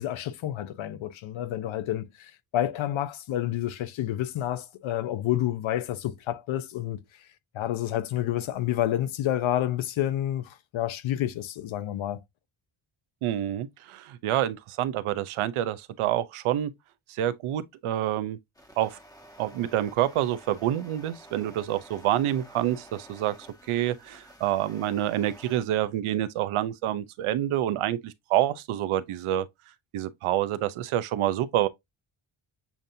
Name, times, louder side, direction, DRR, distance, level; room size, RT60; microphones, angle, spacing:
voice 1, 0.0-7.0 7.5-12.2, left 12 dB, 70° left, 0.8 m, -29 dB
voice 2, 13.2-16.7 17.1-18.4 18.8-19.0 19.4-23.3 23.7-29.5 29.9-31.7, right 12 dB, 85° right, 0.7 m, -27 dB
sound 1, 18.5-25.6, equal, 5° left, 1.0 m, -51 dB
7.0 x 2.6 x 2.7 m
cardioid pair, 115°, 48 cm